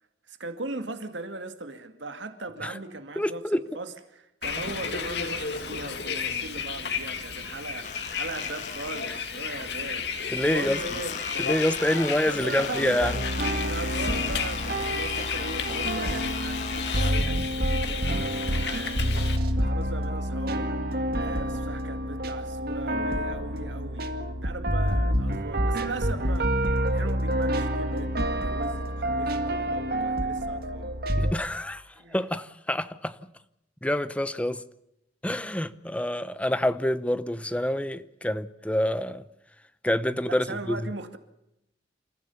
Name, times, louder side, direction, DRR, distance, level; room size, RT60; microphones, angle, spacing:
voice 1, 0.3-11.2 11.7-13.2 13.6-20.7 21.2-26.5 26.9-30.9 32.0-32.2 40.3-41.2, right 2 dB, 85° right, 2.2 m, -39 dB
voice 2, 3.2-3.6 10.3-10.8 11.4-13.2 31.2-31.8 32.1-33.2 33.8-34.6 35.2-39.2 39.8-40.9, left 1 dB, 5° left, 0.8 m, -27 dB
Bus, 4.4-19.4, left 6 dB, 65° left, 2.2 m, -33 dB
electric toothbrush, 7.8-9.5 9.8-17.1, left 6 dB, 45° left, 1.3 m, -38 dB
sound 1, 13.0-31.3, right 1 dB, 55° right, 2.0 m, -28 dB
28.5 x 14.5 x 7.1 m
head